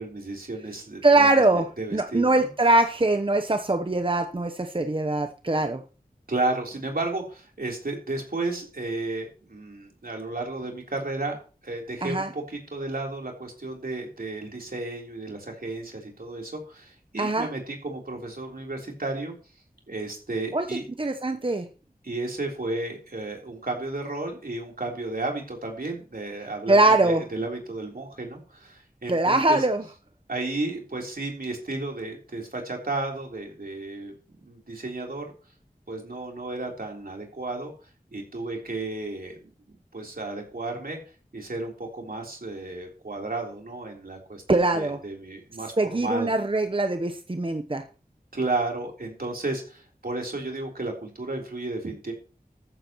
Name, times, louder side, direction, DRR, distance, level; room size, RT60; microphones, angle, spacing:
voice 1, 0.0-2.5 6.3-11.4 11.6-19.3 19.9-20.8 22.0-29.6 30.3-35.2 35.9-37.7 38.1-41.0 41.3-44.4 44.7-46.3 48.3-52.1, right 2 dB, 75° right, 0 dB, 3.7 m, -33 dB
voice 2, 1.0-1.7 1.9-5.8 12.0-12.3 17.2-17.5 20.5-21.7 26.7-27.2 29.1-29.8 44.5-45.0 45.8-47.8, right 2 dB, 35° right, 7 dB, 0.9 m, -22 dB
14.0 x 12.5 x 3.1 m, 0.37 s
wide cardioid pair, 40°, 15 cm